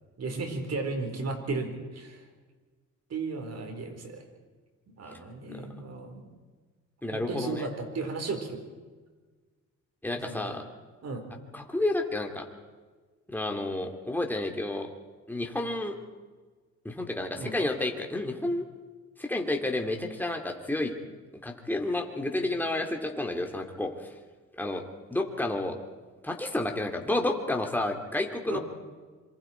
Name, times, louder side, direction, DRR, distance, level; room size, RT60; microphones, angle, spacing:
voice 1, 0.2-2.2 3.1-4.3 4.9-6.3 7.1-8.6 10.1-10.5 11.0-11.2 17.3-17.6 28.5-28.6, right 3 dB, 55° right, 5 dB, 4.7 m, -35 dB
voice 2, 7.0-7.7 10.0-10.6 11.5-12.5 13.3-14.9 15.3-15.9 16.8-18.6 19.2-21.0 21.4-23.9 24.6-24.8 25.1-25.7 26.2-28.6, left 2 dB, 5° left, 3 dB, 2.9 m, -30 dB
26.0 x 24.0 x 4.7 m, 1.4 s
cardioid pair, 90°, 30 cm